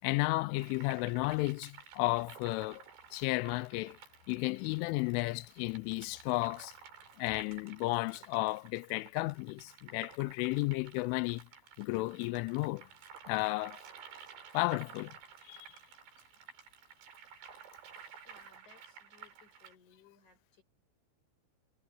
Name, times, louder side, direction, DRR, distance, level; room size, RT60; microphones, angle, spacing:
voice 1, 0.0-2.8 3.1-4.0 4.3-6.7 7.2-11.5 11.8-12.9 13.3-13.8 14.5-15.2 15.5-15.7, left 23 dB, 85° left, 3.1 m, -33 dB
sound 1, 0.5-19.8, right 7 dB, 60° right, 5.6 m, -53 dB
voice 2, 18.2-20.6, left 5 dB, 40° left, 6.3 m, -63 dB
omnidirectional pair, 5.6 m